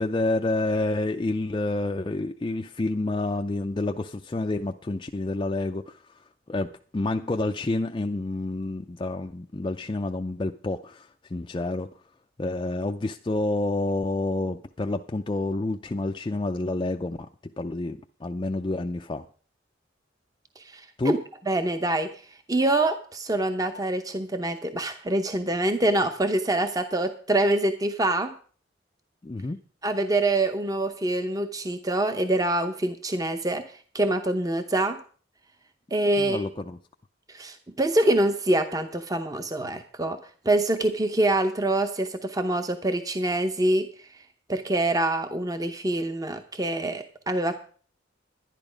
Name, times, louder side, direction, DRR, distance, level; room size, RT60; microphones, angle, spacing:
voice 1, 0.0-6.0 6.5-6.7 6.9-11.9 12.4-17.2 17.6-19.2 21.0-21.1 29.2-29.6 36.2-36.8, left 2 dB, 25° left, 4 dB, 0.4 m, -28 dB
voice 2, 20.7-21.2 21.5-22.1 22.5-28.3 29.8-33.6 33.9-35.0 35.9-36.5 37.3-40.2 40.4-43.9 44.5-47.6, right 1 dB, 20° right, 8 dB, 0.7 m, -25 dB
11.0 x 10.5 x 5.1 m, 0.42 s
head